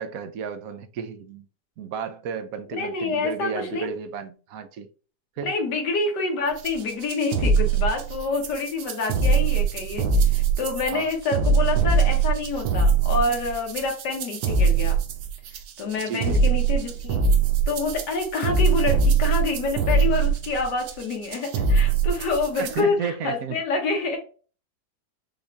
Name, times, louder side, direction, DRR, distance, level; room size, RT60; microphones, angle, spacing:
voice 1, 0.0-1.5 1.8-4.9 5.4-5.6 10.9-11.1 16.1-16.4 22.6-23.6, right 6 dB, 70° right, 0.9 m, -33 dB
voice 2, 2.7-3.9 5.4-15.0 15.8-17.2 17.7-24.2, left 3 dB, 80° left, 1.9 m, -27 dB
sound 1, 6.6-22.8, right 5 dB, 90° right, 1.3 m, -22 dB
5.4 x 2.5 x 3.3 m
omnidirectional pair, 1.8 m